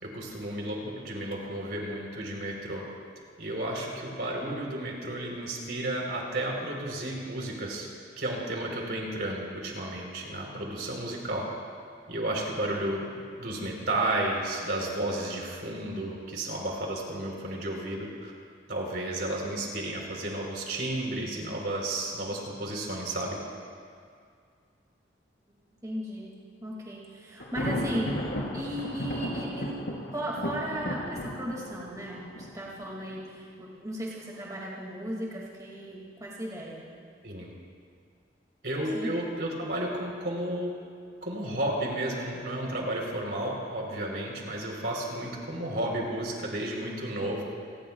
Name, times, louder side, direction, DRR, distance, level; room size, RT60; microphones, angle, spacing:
voice 1, 0.0-2.8 3.4-7.9 8.2-11.4 12.1-13.1 13.4-18.3 18.7-23.4 37.2-37.5 38.6-40.7 41.2-47.4, right 1 dB, 60° right, -1 dB, 3.8 m, -32 dB
voice 2, 25.8-29.8 30.1-36.9 38.9-39.2 44.6-44.9, right 1 dB, 20° right, -4 dB, 2.3 m, -36 dB
Thunder, 27.4-33.2, equal, 75° left, 3.6 m, -35 dB
30.0 x 19.5 x 2.4 m, 2.2 s
head